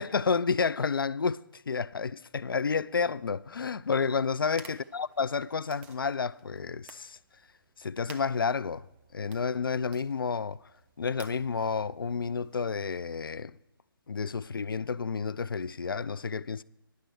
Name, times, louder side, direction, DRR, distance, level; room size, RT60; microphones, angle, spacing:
voice 1, 0.0-7.2 7.8-8.8 9.1-10.6 11.0-13.6 14.1-16.6, left 5 dB, 70° left, 0.4 m, -30 dB
sound 1, 3.9-12.9, right 6 dB, 10° right, 0.4 m, -55 dB
10.5 x 6.7 x 8.1 m
figure-of-eight pair, 140°, 12 cm